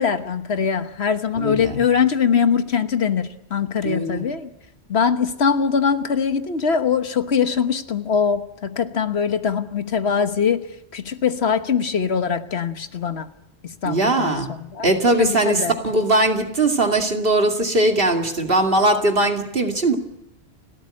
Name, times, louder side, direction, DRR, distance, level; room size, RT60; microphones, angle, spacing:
voice 1, 0.0-4.5 4.9-10.6 10.9-13.3 13.6-14.9 15.2-15.8, left 6 dB, 75° left, 9 dB, 1.5 m, -22 dB
voice 2, 1.3-1.8 3.8-4.2 13.8-14.5 14.8-20.0, right 2 dB, 55° right, 3 dB, 2.6 m, -20 dB
30.0 x 13.0 x 9.9 m, 0.87 s
omnidirectional pair, 1.1 m